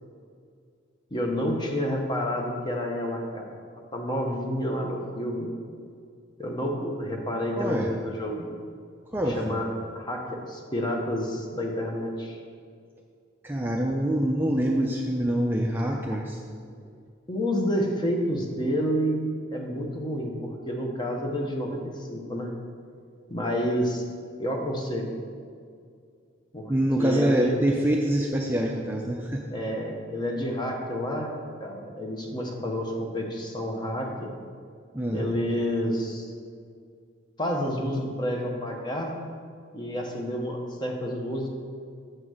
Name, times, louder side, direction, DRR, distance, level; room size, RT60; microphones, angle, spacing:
voice 1, 1.1-3.6 3.9-5.5 6.4-8.5 9.4-9.7 9.9-12.4 17.3-19.2 19.5-22.5 23.3-24.0 24.4-25.1 26.5-26.7 27.0-27.6 29.5-31.3 31.6-34.3 35.1-36.3 37.4-39.2 39.7-41.5, equal, 20° left, 1 dB, 0.8 m, -29 dB
voice 2, 7.6-7.9 9.1-9.6 13.4-16.4 26.7-29.4 34.9-35.3, right 1 dB, 10° right, -1 dB, 0.4 m, -25 dB
7.8 x 3.9 x 6.2 m, 2.2 s
head